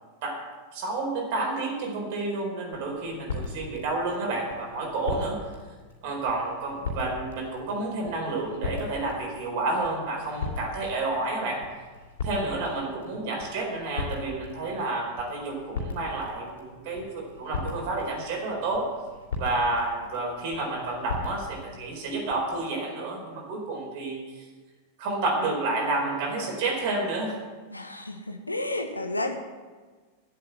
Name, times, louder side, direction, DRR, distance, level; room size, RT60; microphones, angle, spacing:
voice 1, 0.7-5.4 6.0-11.6 12.2-18.9 19.4-24.5 25.0-27.4, right 2 dB, 50° right, 0 dB, 4.3 m, -30 dB
sound 1, 2.7-22.4, left 3 dB, 65° left, 2.9 m, -39 dB
voice 2, 27.7-29.3, left 2 dB, 85° left, 6 dB, 1.3 m, -31 dB
10.5 x 8.0 x 9.1 m, 1.4 s
figure-of-eight pair, 90°, 0 cm